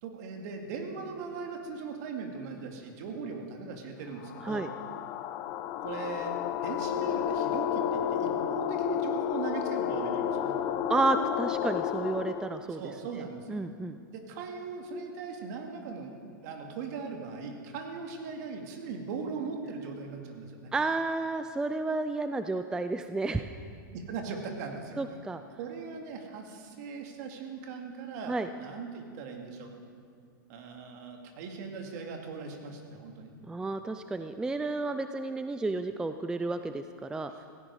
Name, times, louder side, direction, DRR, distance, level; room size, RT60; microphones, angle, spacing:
voice 1, 0.0-4.6 5.8-10.5 12.6-13.5 14.1-20.7 23.9-25.0 25.6-29.7 30.5-33.3 37.3-37.4, right 5 dB, 55° right, 3 dB, 2.3 m, -39 dB
sound 1, 4.2-12.6, left 9 dB, 40° left, 0.7 m, -31 dB
voice 2, 10.9-12.8 13.5-14.0 20.7-23.5 25.0-25.4 28.3-28.5 33.5-37.3, right 3 dB, 5° right, 9 dB, 0.4 m, -31 dB
16.5 x 15.0 x 4.8 m, 2.2 s
hypercardioid pair, 135°, 11 cm